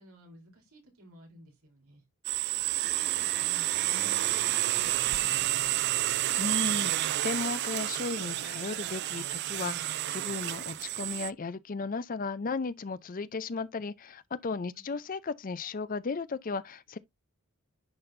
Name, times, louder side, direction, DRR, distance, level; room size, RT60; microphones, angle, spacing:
voice 1, 0.0-2.0 2.8-6.2 14.7-14.9, equal, 75° right, 3.5 m, -54 dB
sound 1, 2.2-11.3, right 15 dB, 50° right, 0.3 m, -30 dB
voice 2, 6.4-17.0, left 4 dB, 40° left, 0.5 m, -35 dB
11.0 x 4.3 x 2.6 m
head